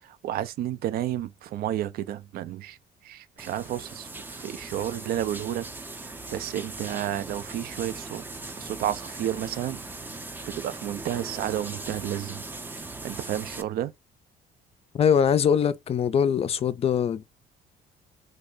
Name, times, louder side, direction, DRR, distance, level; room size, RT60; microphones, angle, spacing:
voice 1, 0.0-2.8 3.0-8.2 8.6-9.8 10.5-12.5 12.8-13.9, right 12 dB, 65° right, 0.5 m, -31 dB
sound 1, 3.4-13.6, right 2 dB, 10° right, 0.5 m, -39 dB
voice 2, 14.9-17.2, left 7 dB, 35° left, 0.4 m, -22 dB
3.3 x 2.1 x 3.8 m
cardioid pair, 110°, 17 cm